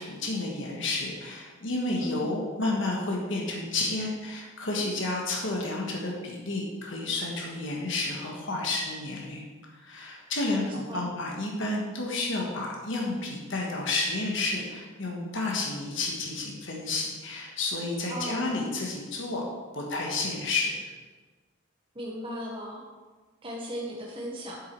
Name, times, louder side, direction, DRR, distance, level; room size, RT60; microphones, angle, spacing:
voice 1, 0.0-9.4 9.7-19.5 19.7-20.9, left 2 dB, 60° left, -1 dB, 1.5 m, -31 dB
voice 2, 2.0-2.4 10.4-11.1 18.1-18.7 21.9-22.8 23.4-24.6, equal, 25° right, -3 dB, 1.2 m, -37 dB
8.2 x 7.4 x 4.7 m, 1.3 s
head